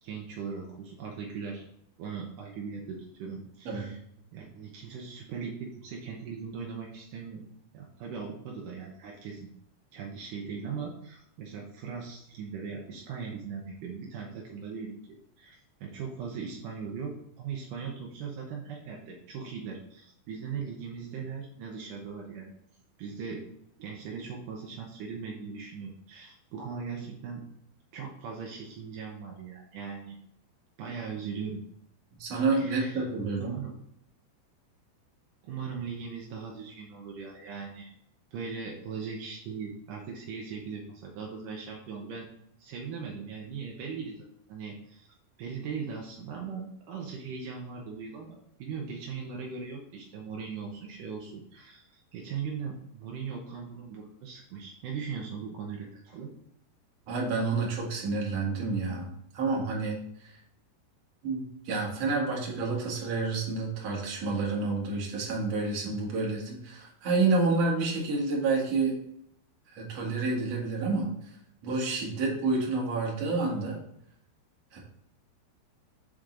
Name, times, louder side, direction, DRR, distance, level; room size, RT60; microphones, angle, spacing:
voice 1, 0.0-1.6 2.0-4.0 4.3-7.4 7.7-9.5 9.9-22.5 23.0-23.4 23.8-27.4 27.9-30.2 30.8-31.6 32.5-33.0 33.4-33.7 35.4-37.9 38.3-42.3 42.6-56.3, right 6 dB, 85° right, -1 dB, 1.8 m, -39 dB
voice 2, 32.2-33.5 57.1-59.1 59.3-60.3 61.2-69.0 69.7-71.1 71.6-73.8 74.7-74.8, right 3 dB, 55° right, -3 dB, 1.9 m, -29 dB
6.1 x 5.2 x 3.8 m, 0.72 s
omnidirectional pair, 5.1 m